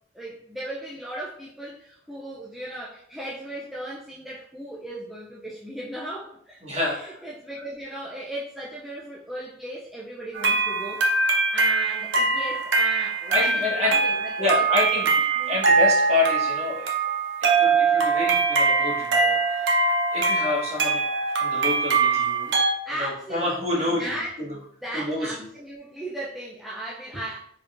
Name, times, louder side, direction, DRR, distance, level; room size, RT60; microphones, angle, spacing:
voice 1, 0.1-11.0 11.5-15.6 22.8-27.4, right 1 dB, ahead, -6 dB, 0.4 m, -37 dB
voice 2, 6.6-7.2 13.3-13.9 14.4-15.1 15.5-17.0 17.4-21.0 21.3-22.5 23.0-24.5 24.9-25.3, left 2 dB, 35° right, -5 dB, 1.5 m, -28 dB
sound 1, 10.3-22.7, right 4 dB, 80° right, 0.8 m, -22 dB
4.8 x 3.8 x 2.5 m, 0.68 s
head